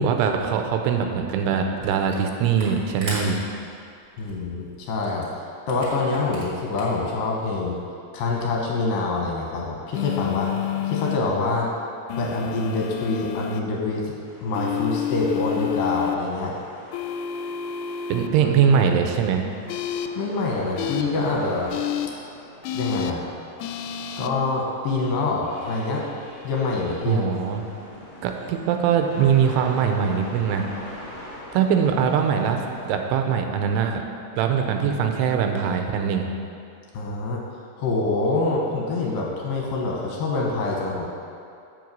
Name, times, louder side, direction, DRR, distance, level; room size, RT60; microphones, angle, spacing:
voice 1, 0.0-3.4 18.1-19.4 27.1-27.6 28.2-30.6 31.5-32.6 32.8-34.0 34.4-36.3, right 7 dB, 85° right, 4 dB, 2.7 m, -22 dB
Camera, 1.8-2.3 2.5-7.1, right 2 dB, 40° right, 1.2 m, -38 dB
voice 2, 4.2-5.3 5.7-7.8 8.1-10.5 10.8-11.7 12.1-14.2 14.4-16.5 18.4-18.8 19.0-19.1 20.2-21.7 22.7-23.3 24.2-26.0 26.4-27.2 36.9-37.4 37.8-41.1, left 3 dB, 70° left, -2 dB, 2.4 m, -25 dB
sound 1, 9.9-11.2 12.1-13.6 14.5-16.2 16.9-18.3 19.7-20.1 20.8-21.0 21.7-22.1 22.6-23.1 23.6-24.3, left 9 dB, 90° left, 2.7 m, -29 dB
sound 2, 14.2-32.9, left 1 dB, 45° left, 1.2 m, -43 dB
7.9 x 7.8 x 5.4 m, 2.5 s
omnidirectional pair, 4.8 m